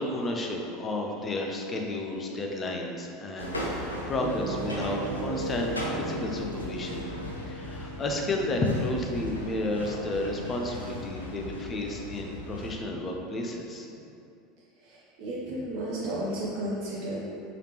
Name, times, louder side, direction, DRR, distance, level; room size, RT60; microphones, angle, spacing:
voice 1, 0.0-7.1 7.5-13.9, left 1 dB, 25° left, 1 dB, 0.6 m, -32 dB
sound 1, 3.4-12.7, left 1 dB, 90° left, 0.5 m, -38 dB
Piano, 4.2-12.0, right 2 dB, 20° right, 0.9 m, -39 dB
voice 2, 14.8-17.2, right 1 dB, 55° right, -5 dB, 0.6 m, -33 dB
4.9 x 3.3 x 3.0 m, 2.6 s
figure-of-eight pair, 75°, 0 cm